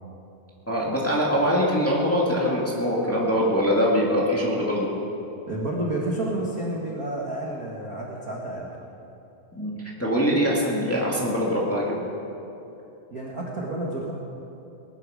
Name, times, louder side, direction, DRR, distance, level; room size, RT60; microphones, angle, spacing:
voice 1, 0.7-4.9 9.5-9.7 10.0-11.9, equal, 15° left, -4 dB, 0.5 m, -23 dB
voice 2, 5.5-8.7 13.1-14.1, right 1 dB, 80° right, -3 dB, 0.8 m, -30 dB
19.5 x 11.5 x 5.0 m, 2.9 s
omnidirectional pair, 4.3 m